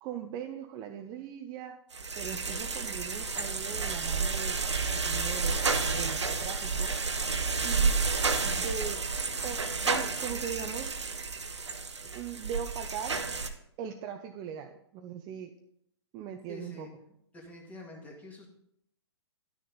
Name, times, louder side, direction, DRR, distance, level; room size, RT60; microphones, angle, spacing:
voice 1, 0.0-1.8 2.2-4.6 4.9-6.9 7.6-8.0 8.4-9.0 9.4-10.9 12.0-13.2 13.8-15.5 16.1-16.9, right 8 dB, 25° right, 6 dB, 0.6 m, -40 dB
sound 1, 1.9-13.5, right 4 dB, 90° right, 0.9 m, -31 dB
voice 2, 16.5-16.9 17.3-18.5, left 2 dB, 10° left, 0 dB, 2.0 m, -46 dB
11.0 x 6.4 x 4.0 m, 0.74 s
hypercardioid pair, 130°, 14 cm